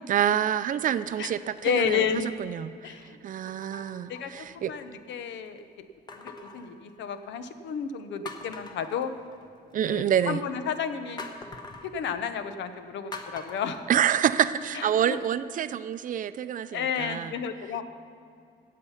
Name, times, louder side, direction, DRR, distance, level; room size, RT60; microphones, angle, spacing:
voice 1, 0.1-3.0 3.2-4.7 9.7-10.4 13.9-17.3, right 9 dB, 45° right, 13 dB, 0.4 m, -27 dB
sound 1, 0.5-1.0 1.7-1.8 3.5-4.9 6.1-7.4 7.9-8.0 8.3-9.7 11.2-11.9 13.1-14.7 15.1-15.2, left 3 dB, 25° left, 1.0 m, -44 dB
voice 2, 1.6-2.3 2.8-3.2 4.1-5.6 6.2-9.1 9.8-11.2 11.8-13.8 14.7-15.2 16.7-17.8, left 7 dB, 90° left, 10 dB, 0.8 m, -31 dB
17.0 x 7.6 x 5.7 m, 2.4 s
cardioid pair, 155°, 18 cm